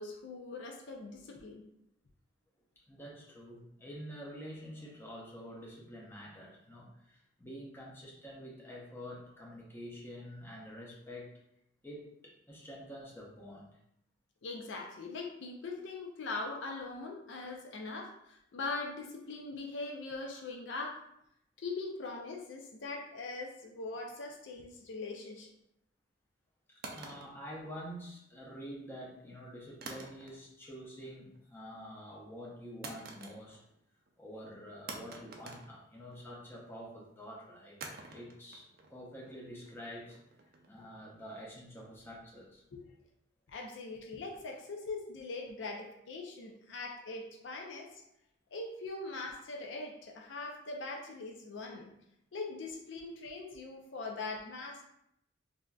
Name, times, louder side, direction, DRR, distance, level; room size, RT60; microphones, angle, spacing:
voice 1, 0.0-1.7 14.4-21.0 21.6-25.5 42.7-42.8 43.5-47.9 48.5-51.9 52.3-54.8, left 3 dB, 65° left, 1 dB, 0.4 m, -41 dB
voice 2, 2.9-11.3 11.8-13.7 26.9-33.6 34.2-37.8 38.1-40.2 40.7-42.6, equal, 10° left, -3 dB, 0.6 m, -47 dB
sound 1, 26.8-28.2 29.8-30.7 31.0-31.4 32.8-33.8 34.1-34.2 34.9-36.4 37.8-40.8, right 3 dB, 50° right, 0.4 m, -48 dB
3.4 x 2.5 x 2.2 m, 0.77 s
head